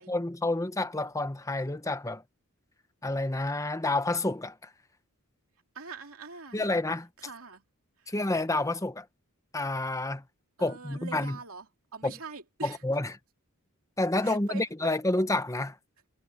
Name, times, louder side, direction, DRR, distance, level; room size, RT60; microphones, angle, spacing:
voice 1, 0.0-2.2 3.0-4.7 6.5-7.0 8.1-9.1 9.5-10.2 10.6-11.4 12.8-13.1 14.0-15.8, left 2 dB, 15° left, 1.1 m, -29 dB
voice 2, 5.7-6.8 7.2-7.6 8.0-8.3 10.6-12.8 14.2-14.9, right 4 dB, 70° right, 2.8 m, -44 dB
head